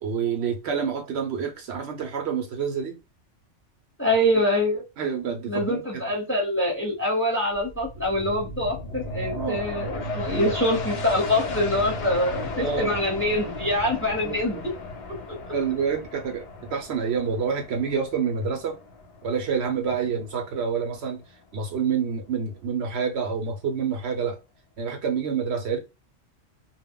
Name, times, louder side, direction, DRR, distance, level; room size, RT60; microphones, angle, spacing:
voice 1, 0.0-3.0 5.0-5.8 9.3-9.6 10.3-10.6 12.6-12.9 14.2-14.4 15.5-18.8 19.2-21.2 21.5-24.4 24.8-25.8, right 6 dB, 65° right, 0.8 m, -27 dB
voice 2, 4.0-4.8 5.5-14.6 15.1-15.4, left 1 dB, 10° left, 0.7 m, -25 dB
sound 1, 7.5-20.8 21.2-21.3, left 3 dB, 55° left, 0.6 m, -35 dB
2.3 x 2.0 x 3.5 m
omnidirectional pair, 1.2 m